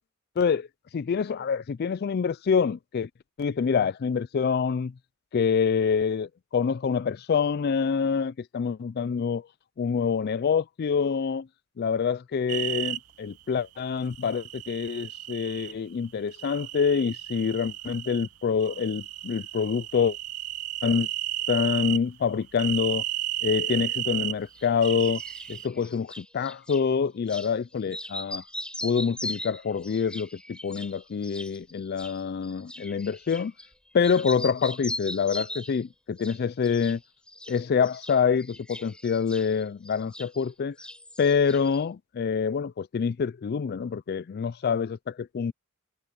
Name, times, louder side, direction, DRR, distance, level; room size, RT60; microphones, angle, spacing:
voice 1, 0.4-0.7 0.9-3.1 3.4-4.9 5.3-9.5 9.8-11.5 11.8-20.2 20.8-21.1 21.5-23.0 23.4-25.2 25.5-28.4 28.8-33.5 33.9-37.0 37.5-40.8 41.2-45.5, left 6 dB, 45° left, 0.3 m, -26 dB
sound 1, 12.5-13.0 14.1-15.7 16.3-18.3 18.6-22.0 22.6-24.3 24.8-25.7, right 15 dB, 85° right, 0.8 m, -33 dB
sound 2, 24.5-26.8 27.3-27.5 27.8-33.7 34.0-35.8 36.2-37.0 37.3-40.5 40.8-41.8, left 1 dB, 5° left, 7.0 m, -40 dB
head